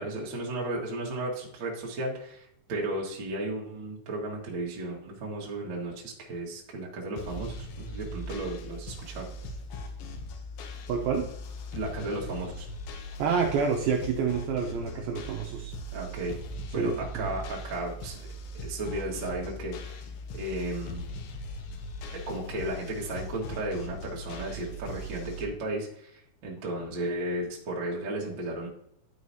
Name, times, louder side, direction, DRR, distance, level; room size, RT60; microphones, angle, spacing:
voice 1, 0.0-9.2 11.7-12.7 15.9-16.3 16.7-18.2 18.5-20.0 20.3-21.0 22.1-28.7, right 1 dB, 55° right, -3 dB, 1.3 m, -34 dB
sound 1, 7.2-25.5, left 1 dB, 85° left, 1.9 m, -40 dB
voice 2, 10.9-11.2 13.2-15.7 16.8-17.3, right 6 dB, 80° right, 1 dB, 2.2 m, -28 dB
11.5 x 4.8 x 2.8 m, 0.74 s
omnidirectional pair, 5.0 m